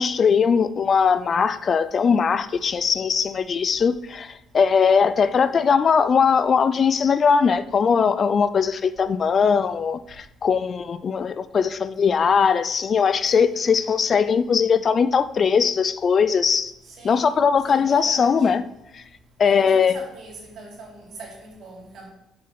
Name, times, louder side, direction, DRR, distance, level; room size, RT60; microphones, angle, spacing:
voice 1, 0.0-16.7 17.0-18.6 18.9-19.0 19.4-19.9, left 6 dB, 40° left, 13 dB, 0.4 m, -20 dB
voice 2, 5.3-5.6 13.5-14.0 16.9-17.4 17.7-18.5 19.4-22.1, right 3 dB, 60° right, -2 dB, 3.7 m, -42 dB
6.7 x 6.5 x 6.0 m, 0.84 s
cardioid pair, 120°, 0 cm